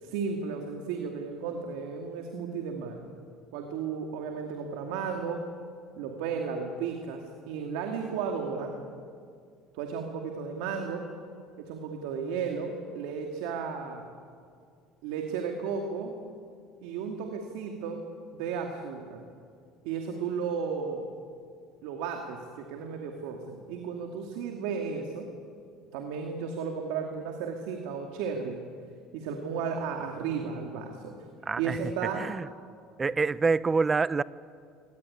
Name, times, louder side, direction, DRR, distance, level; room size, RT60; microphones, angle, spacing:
voice 1, 0.0-3.1 3.5-5.4 6.0-8.7 9.7-11.1 11.6-14.1 15.0-16.2 16.8-18.0 18.3-19.2 19.8-21.1 21.8-25.3 25.9-28.6 29.1-31.2 31.6-32.3, right 6 dB, 85° right, 3 dB, 2.4 m, -34 dB
voice 2, 31.5-31.8 32.1-32.5 33.0-34.2, right 4 dB, 20° right, 18 dB, 0.5 m, -26 dB
23.5 x 18.5 x 9.8 m, 2.3 s
cardioid pair, 135°, 0 cm